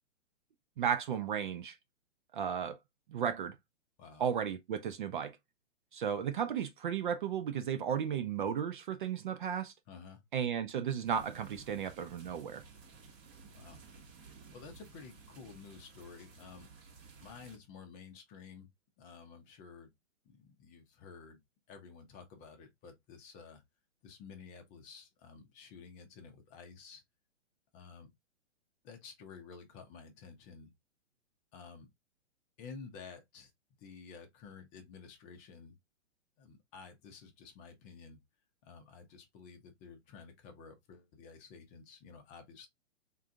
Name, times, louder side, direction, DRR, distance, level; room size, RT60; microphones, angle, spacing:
voice 1, 0.8-1.8 2.3-2.8 3.1-3.5 4.2-5.3 5.9-9.7 10.3-12.6, right 8 dB, 45° right, 0.4 m, -34 dB
voice 2, 9.9-10.2 13.5-13.8 14.2-16.7 17.2-18.7 19.0-19.9 20.2-21.4 21.7-23.6 24.0-27.0 27.7-28.1 28.8-30.7 31.5-31.9 32.6-33.5 33.8-35.8 36.4-38.2 38.6-42.7, left 5 dB, 20° left, 0.6 m, -52 dB
sound 1, 11.0-17.6, right 4 dB, 25° right, 1.0 m, -55 dB
3.7 x 2.4 x 2.6 m
figure-of-eight pair, 120°, 37 cm